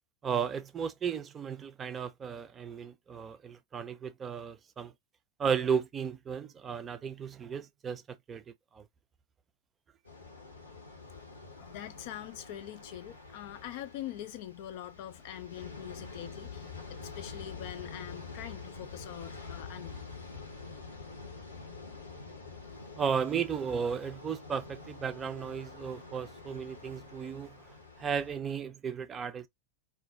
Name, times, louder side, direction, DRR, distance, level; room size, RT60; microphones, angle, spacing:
voice 1, 0.2-4.9 5.4-8.4 8.7-8.9 23.0-29.5, right 7 dB, 20° right, 0.4 m, -34 dB
sound 1, 10.0-28.4, left 4 dB, 75° left, 0.9 m, -47 dB
voice 2, 11.6-20.1, left 12 dB, 50° left, 0.4 m, -44 dB
2.5 x 2.2 x 3.6 m
figure-of-eight pair, 90°, 0 cm